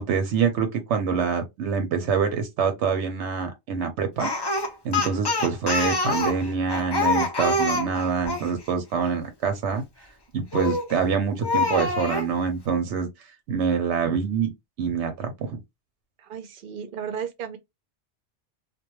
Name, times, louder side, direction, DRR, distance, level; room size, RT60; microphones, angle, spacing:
voice 1, 0.0-4.3 4.8-9.8 10.3-13.1 13.5-14.5 14.8-15.6, right 6 dB, 85° right, 0.9 m, -25 dB
Speech, 4.2-8.5 10.5-10.9 11.4-12.3, left 2 dB, 35° left, 0.4 m, -25 dB
voice 2, 16.2-17.6, right 7 dB, 60° right, 0.6 m, -34 dB
2.2 x 2.2 x 2.9 m
omnidirectional pair, 1.2 m